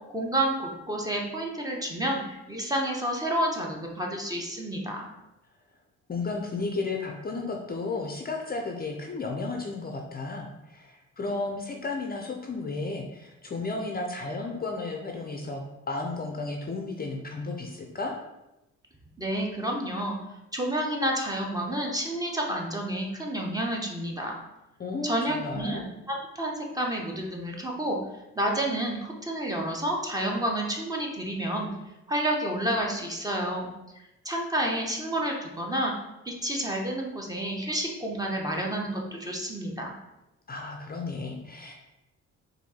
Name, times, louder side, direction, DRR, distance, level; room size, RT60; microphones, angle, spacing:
voice 1, 0.1-5.1 19.2-20.2 20.5-24.4 25.0-28.0 28.4-31.7 32.1-33.7 34.0-35.9 36.2-39.9, right 1 dB, 10° right, -1 dB, 0.9 m, -30 dB
voice 2, 6.1-18.1 24.8-25.8 40.5-41.8, left 3 dB, 30° left, 2 dB, 0.6 m, -33 dB
4.5 x 2.7 x 4.2 m, 0.94 s
cardioid pair, 90°, 30 cm